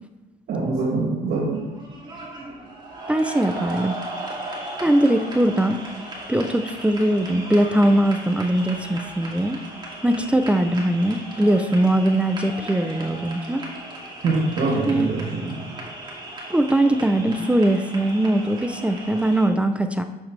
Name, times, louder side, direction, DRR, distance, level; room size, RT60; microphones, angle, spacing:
voice 1, 0.5-1.6 14.2-15.5, right 3 dB, 65° right, -4 dB, 2.4 m, -24 dB
sound 1, 1.5-19.5, right 1 dB, 25° right, 2.3 m, -36 dB
voice 2, 3.1-3.9 4.8-5.8 6.3-9.6 10.0-13.6 14.9-15.1 16.5-20.0, right 1 dB, 5° right, 7 dB, 0.5 m, -21 dB
10.5 x 7.3 x 3.3 m, 1.1 s
cardioid pair, 110°, 17 cm